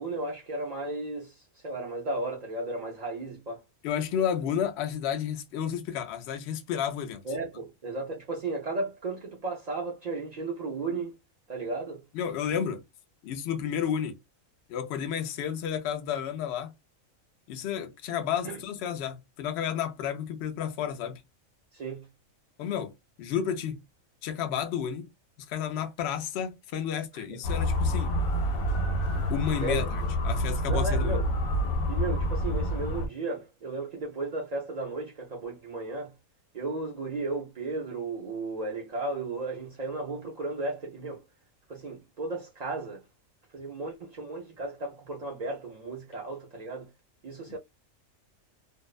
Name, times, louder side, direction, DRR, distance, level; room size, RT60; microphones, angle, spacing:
voice 1, 0.0-3.6 7.2-11.1 11.5-12.0 18.4-18.6 21.7-22.1 27.1-27.4 29.6-29.8 30.7-31.3 31.9-36.1 36.5-41.2 41.7-43.0 43.5-46.9 47.2-47.6, right 3 dB, 85° right, 0.3 m, -34 dB
voice 2, 3.8-7.2 12.1-12.8 13.2-14.2 14.7-16.7 17.5-21.2 22.6-23.8 24.2-25.1 25.5-28.1 29.3-31.2, left 8 dB, 65° left, 0.7 m, -31 dB
Motor vehicle (road) / Siren, 27.4-33.1, equal, 85° left, 1.1 m, -28 dB
2.6 x 2.1 x 2.3 m
omnidirectional pair, 1.4 m